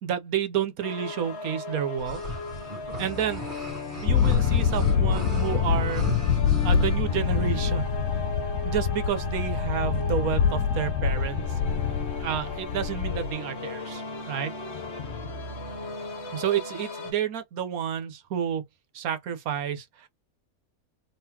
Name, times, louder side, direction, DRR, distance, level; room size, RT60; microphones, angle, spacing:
voice 1, 0.0-2.2 3.0-3.4 4.0-6.1 6.6-8.0 8.6-11.4 12.2-14.5 16.3-18.6 18.9-20.1, right 9 dB, 75° right, 1.3 m, -30 dB
sound 1, 0.8-17.1, left 3 dB, 50° left, 1.1 m, -37 dB
sound 2, 2.0-6.9, equal, 35° right, 1.6 m, -36 dB
sound 3, 4.1-13.3, left 7 dB, 85° left, 1.1 m, -25 dB
3.8 x 3.1 x 2.8 m
omnidirectional pair, 1.5 m